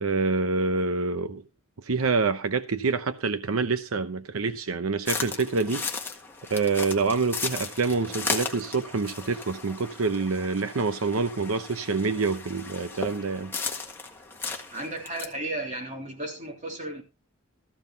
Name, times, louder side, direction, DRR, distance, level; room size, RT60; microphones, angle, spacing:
voice 1, 0.0-1.4 1.8-5.9 6.5-13.5, right 4 dB, 85° right, 0.8 m, -26 dB
sound 1, 5.1-15.2, left 4 dB, 10° left, 1.6 m, -36 dB
voice 2, 14.7-17.0, right 1 dB, 35° right, 3.3 m, -34 dB
14.5 x 5.5 x 5.8 m
head